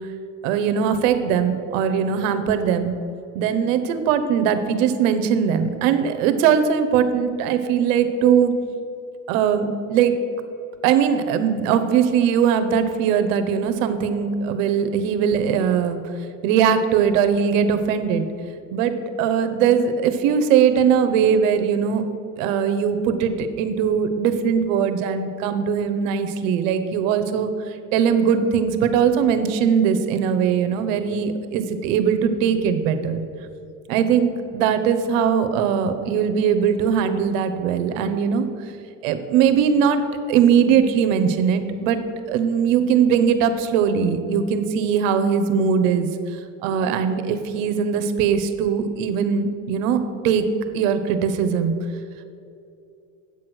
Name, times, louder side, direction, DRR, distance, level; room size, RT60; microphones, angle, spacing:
voice 1, 0.4-2.9 3.3-8.5 9.3-10.1 10.8-16.0 16.4-18.3 18.7-22.0 22.4-27.5 27.9-33.2 33.9-38.5 39.0-40.0 40.3-42.0 42.3-46.1 46.6-50.4 50.7-51.7, right 7 dB, 85° right, 9 dB, 1.0 m, -20 dB
8.5 x 6.2 x 6.1 m, 2.6 s
supercardioid pair, 115°, 38 cm